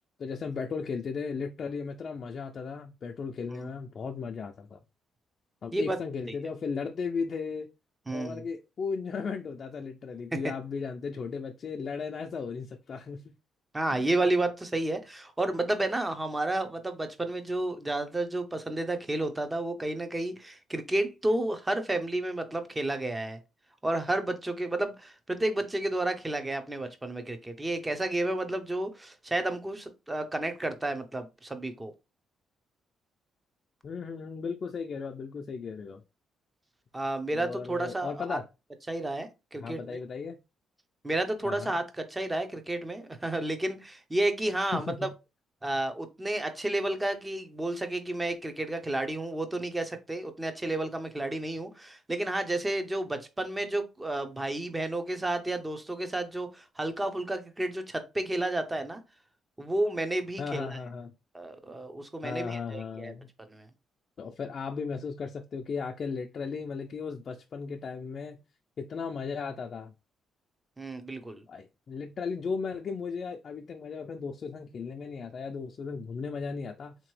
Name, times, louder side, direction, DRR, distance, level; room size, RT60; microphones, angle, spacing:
voice 1, 0.2-4.8 5.6-7.7 8.1-13.2 13.9-14.0 33.8-36.0 37.3-38.5 39.6-40.4 41.4-41.8 44.7-45.1 60.4-61.1 62.2-63.3 64.2-68.4 68.8-69.9 71.5-77.0, left 5 dB, 50° left, 0.4 m, -36 dB
voice 2, 8.1-8.4 10.3-10.5 13.7-23.4 23.8-31.9 36.9-38.4 38.9-40.0 41.0-45.1 45.6-59.0 59.6-60.8 61.3-63.1 63.5-63.7 70.8-71.4, right 1 dB, 15° right, 0.7 m, -31 dB
3.7 x 2.9 x 3.1 m
cardioid pair, 90°, 0 cm